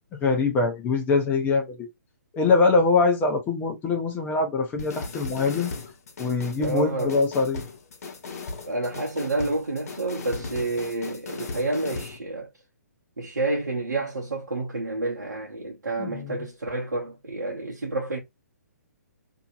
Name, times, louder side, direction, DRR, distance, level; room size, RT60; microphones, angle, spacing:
voice 1, 0.2-1.9 2.3-5.7 6.2-7.6 16.0-16.4, left 4 dB, 20° left, 1.0 m, -23 dB
sound 1, 4.8-12.2, left 3 dB, 60° left, 1.0 m, -37 dB
voice 2, 6.6-7.2 8.7-12.5 13.2-18.2, right 2 dB, 80° right, 0.9 m, -29 dB
2.9 x 2.8 x 2.4 m
figure-of-eight pair, 130°, 9 cm